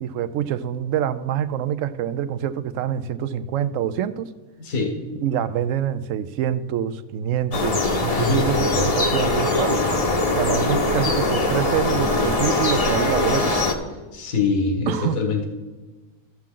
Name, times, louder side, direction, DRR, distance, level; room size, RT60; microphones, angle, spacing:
voice 1, 0.0-4.3 5.2-9.9 10.4-13.6 14.9-15.2, right 9 dB, 70° right, 14 dB, 0.9 m, -25 dB
voice 2, 4.6-5.0 8.1-8.9 14.1-15.5, left 4 dB, 70° left, 2 dB, 1.8 m, -24 dB
sound 1, 7.5-13.7, left 2 dB, 30° left, 0.8 m, -22 dB
14.0 x 7.4 x 3.8 m, 1.2 s
omnidirectional pair, 1.5 m